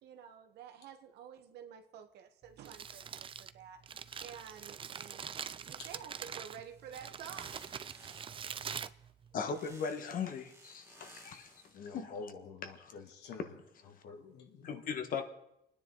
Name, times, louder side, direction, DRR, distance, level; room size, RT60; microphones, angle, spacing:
voice 1, 0.0-3.1 3.4-5.3 5.6-7.6, right 8 dB, 75° right, 1.5 m, -50 dB
Crumpling crinkling, 2.4-9.7, right 7 dB, 30° right, 0.5 m, -44 dB
sound 1, 6.3-8.6 9.5-11.8, right 2 dB, 15° right, 1.4 m, -59 dB
voice 2, 9.3-12.2 12.7-12.9 13.9-14.0 14.6-15.2, left 6 dB, 55° left, 1.6 m, -39 dB
voice 3, 11.7-13.4 13.9-14.8, left 4 dB, 80° left, 2.4 m, -48 dB
28.5 x 9.9 x 4.0 m
cardioid pair, 110°, 17 cm